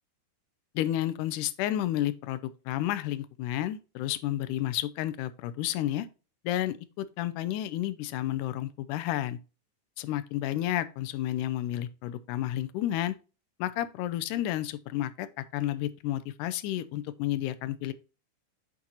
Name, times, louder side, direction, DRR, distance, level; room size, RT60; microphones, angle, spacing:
voice 1, 0.8-6.1 6.4-9.4 10.0-13.2 13.6-17.9, left 13 dB, 85° left, 2.0 m, -31 dB
8.5 x 4.0 x 2.9 m
omnidirectional pair, 3.7 m